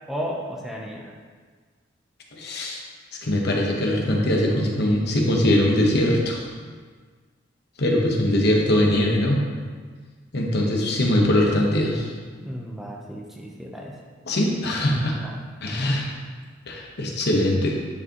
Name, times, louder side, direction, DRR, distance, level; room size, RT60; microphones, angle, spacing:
voice 1, 0.1-1.1 12.4-14.0 15.1-15.3 15.6-15.9, equal, ahead, -2 dB, 0.7 m, -34 dB
voice 2, 2.3-2.8 3.2-6.5 7.8-9.4 10.3-12.1 14.3-15.1 15.6-16.1 16.7-17.7, left 1 dB, 60° left, -1 dB, 1.1 m, -21 dB
9.7 x 4.8 x 3.0 m, 1.5 s
head